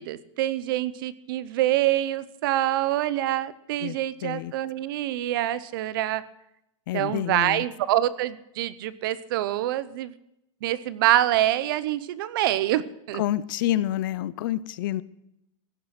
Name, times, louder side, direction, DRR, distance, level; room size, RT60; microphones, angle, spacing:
voice 1, 0.0-6.2 6.9-10.1 10.6-13.2, right 13 dB, 40° right, 17 dB, 0.7 m, -26 dB
voice 2, 3.8-4.5 6.9-7.6 13.1-15.0, left 13 dB, 40° left, 18 dB, 0.5 m, -28 dB
16.5 x 10.5 x 5.9 m, 0.85 s
supercardioid pair, 175°, 17 cm